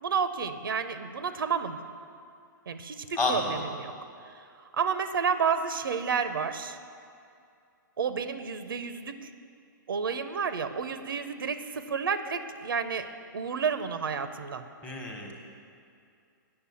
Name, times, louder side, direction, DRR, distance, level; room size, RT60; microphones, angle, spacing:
voice 1, 0.0-1.8 2.7-3.9 4.7-6.8 8.0-9.3 9.9-13.1 13.3-14.6, right 6 dB, 85° right, 10 dB, 0.7 m, -30 dB
voice 2, 3.2-3.6 14.8-15.3, left 2 dB, 15° left, 0 dB, 1.1 m, -29 dB
8.8 x 7.0 x 6.9 m, 2.5 s
hypercardioid pair, 150°, 11 cm